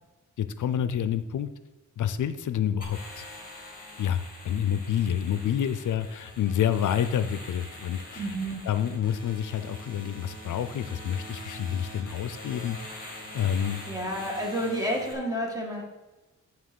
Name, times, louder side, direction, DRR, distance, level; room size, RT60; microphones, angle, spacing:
voice 1, 0.4-1.5 2.0-3.3 4.0-8.3 8.7-12.8 13.3-13.8, left 9 dB, 75° left, 12 dB, 0.5 m, -28 dB
sound 1, 2.8-15.1, left 1 dB, 30° left, 2.1 m, -44 dB
voice 2, 8.2-8.6 13.9-15.8, equal, 10° right, -2 dB, 1.7 m, -30 dB
8.8 x 3.8 x 6.9 m, 1.1 s
wide cardioid pair, 155°, 31 cm